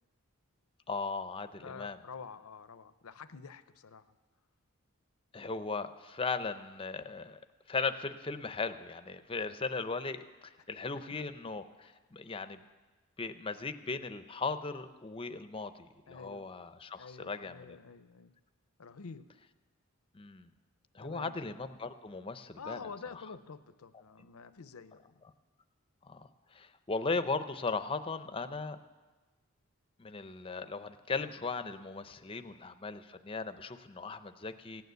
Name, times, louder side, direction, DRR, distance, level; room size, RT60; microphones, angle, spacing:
voice 1, 0.9-2.0 5.3-7.4 7.7-12.6 13.2-17.8 20.1-20.5 20.9-22.8 26.0-28.8 30.0-34.8, left 4 dB, 25° left, 10 dB, 0.6 m, -37 dB
voice 2, 1.6-4.0 10.9-11.0 16.1-16.5 17.0-18.3 18.8-19.3 21.0-21.4 22.6-25.1, left 5 dB, 75° left, 13 dB, 0.6 m, -48 dB
16.5 x 9.4 x 8.0 m, 1.3 s
head